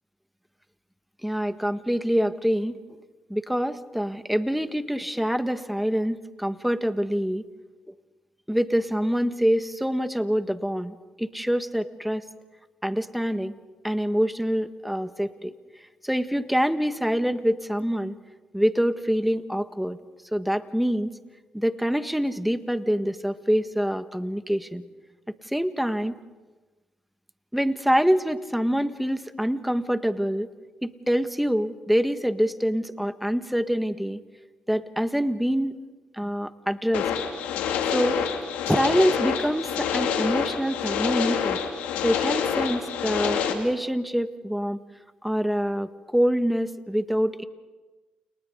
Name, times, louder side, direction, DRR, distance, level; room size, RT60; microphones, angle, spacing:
voice 1, 1.2-2.7 3.3-7.4 8.5-12.2 12.8-13.5 13.8-15.5 16.0-18.2 18.5-20.0 20.3-21.1 21.5-24.8 25.4-26.1 27.5-30.5 30.8-34.2 34.7-35.8 36.1-37.3 37.9-38.2 38.7-41.6 42.0-44.8 45.2-47.4, equal, 5° right, 10 dB, 1.6 m, -25 dB
sound 1, 36.9-43.5, left 8 dB, 85° left, 2.5 m, -27 dB
30.0 x 29.5 x 3.9 m, 1.2 s
supercardioid pair, 55°, 3 cm